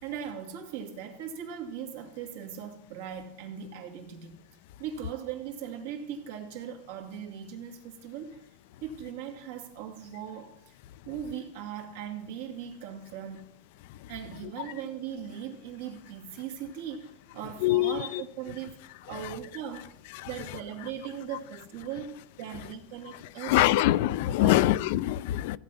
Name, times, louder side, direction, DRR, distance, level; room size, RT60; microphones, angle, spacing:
voice 1, 0.0-4.3 4.8-8.4 8.8-10.7 11.1-13.5 14.1-19.9 20.3-23.7 24.3-24.7, right 8 dB, 80° right, 3 dB, 2.3 m, -39 dB
voice 2, 17.6-18.2 23.4-25.6, left 15 dB, 70° left, 18 dB, 0.4 m, -24 dB
15.5 x 8.4 x 5.8 m, 0.77 s
supercardioid pair, 135°, 0 cm